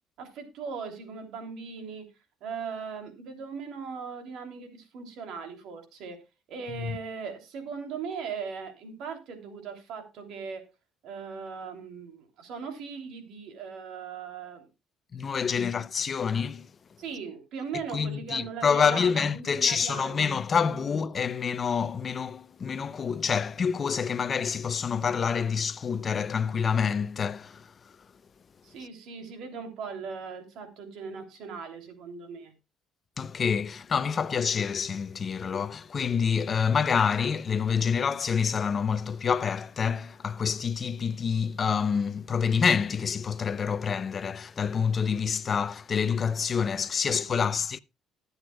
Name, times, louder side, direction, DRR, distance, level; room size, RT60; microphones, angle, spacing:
voice 1, 0.2-2.0 2.4-6.2 6.5-10.6 11.0-14.7 17.0-20.8 28.6-32.5 47.0-47.5, right 5 dB, 70° right, 3.2 m, -39 dB
voice 2, 15.1-16.7 17.9-27.7 33.2-47.8, left 6 dB, 40° left, 0.6 m, -27 dB
20.0 x 8.0 x 2.3 m
supercardioid pair, 85°, 0 cm